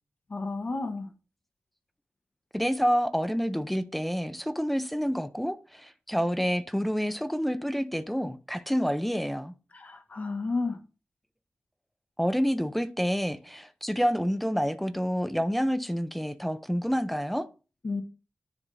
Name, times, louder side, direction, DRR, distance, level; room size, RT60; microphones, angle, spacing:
voice 1, 0.3-1.1 9.7-10.8 17.8-18.0, left 3 dB, 40° left, 1.3 m, -31 dB
voice 2, 2.5-9.5 12.2-17.5, equal, ahead, 0.5 m, -28 dB
10.0 x 3.5 x 4.1 m
wide cardioid pair, 170°, 4 cm